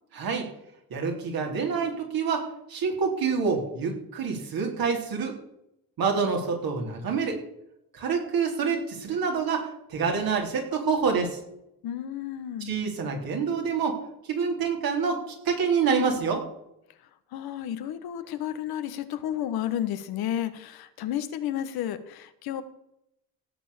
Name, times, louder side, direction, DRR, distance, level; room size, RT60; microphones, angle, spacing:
voice 1, 0.1-0.5 0.9-5.4 6.0-7.4 7.9-11.4 12.7-14.0 14.3-16.4, right 5 dB, 70° right, 1 dB, 3.8 m, -27 dB
voice 2, 11.8-12.7 17.3-22.6, left 11 dB, 80° left, 11 dB, 1.2 m, -32 dB
16.5 x 6.4 x 7.1 m, 0.82 s
supercardioid pair, 60°, 36 cm